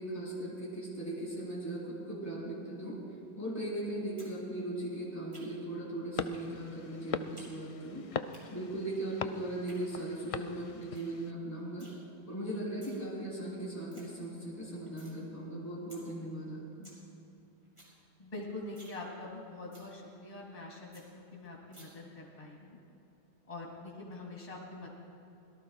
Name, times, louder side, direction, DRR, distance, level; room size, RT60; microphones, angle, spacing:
voice 1, 0.0-3.0 3.3-8.0 8.5-11.9 12.3-16.9, right 1 dB, 15° left, -7 dB, 3.6 m, -38 dB
sound 1, 4.2-4.3 4.6-5.7 6.3-6.5 6.8-7.5 7.8-8.4 9.4-9.8 10.3-10.4 10.6-10.7 10.9-11.2 11.4-11.9 12.6-13.0 13.4-13.5 13.7-14.0 14.4-15.2 15.5-15.6 15.9-16.0 16.4-16.5 16.7-17.0 17.3-17.4 17.6-17.9 18.3-18.4 18.7-19.0 19.3-19.4 19.7-19.9 20.3-20.4 20.6-20.7 20.9-21.0 21.7-21.8, right 1 dB, 25° right, 3.9 m, -56 dB
sound 2, 6.2-11.3, left 5 dB, 55° left, 0.3 m, -41 dB
voice 2, 18.2-22.8 23.5-24.9, left 2 dB, 35° left, -2 dB, 2.2 m, -44 dB
24.5 x 17.5 x 2.4 m, 2.9 s
omnidirectional pair, 1.1 m